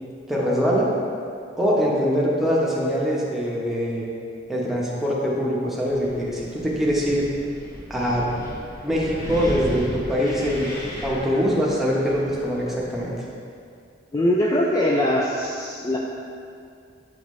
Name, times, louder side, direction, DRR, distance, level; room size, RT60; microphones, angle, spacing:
voice 1, 0.3-0.9 1.6-4.1 4.5-7.3 7.9-8.3 8.8-13.1, equal, ahead, -5 dB, 0.9 m, -23 dB
Wind, 5.8-13.1, equal, 50° left, 1.5 m, -36 dB
voice 2, 14.1-16.0, left 1 dB, 20° left, -3 dB, 0.3 m, -22 dB
8.1 x 3.9 x 3.1 m, 2.4 s
head